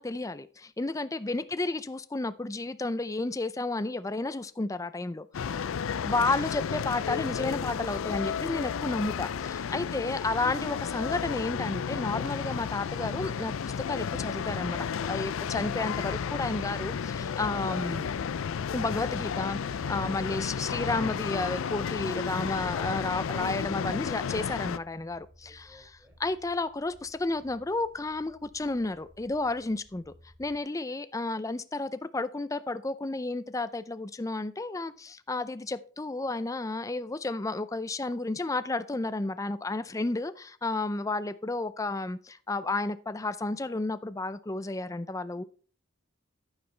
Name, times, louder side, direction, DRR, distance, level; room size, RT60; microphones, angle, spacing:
voice 1, 0.0-5.4 6.0-18.1 18.7-25.6 26.2-30.0 30.4-45.4, left 2 dB, 15° left, 0.4 m, -32 dB
sound 1, 5.3-24.8, left 7 dB, 80° left, 0.4 m, -32 dB
sound 2, 16.1-30.6, equal, 50° right, 2.0 m, -58 dB
voice 2, 25.4-26.2, left 1 dB, 10° right, 3.8 m, -61 dB
10.5 x 9.2 x 3.3 m
head